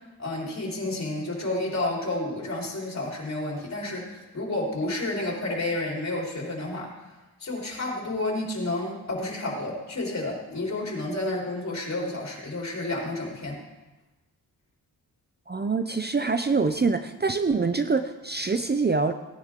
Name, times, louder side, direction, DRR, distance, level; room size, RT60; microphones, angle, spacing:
voice 1, 0.2-4.1 4.3-6.9 7.4-13.6, left 2 dB, 45° left, -2 dB, 4.3 m, -30 dB
voice 2, 15.5-19.1, right 4 dB, 25° right, 9 dB, 0.7 m, -25 dB
17.5 x 10.0 x 3.8 m, 1.1 s
cardioid pair, 65°, 38 cm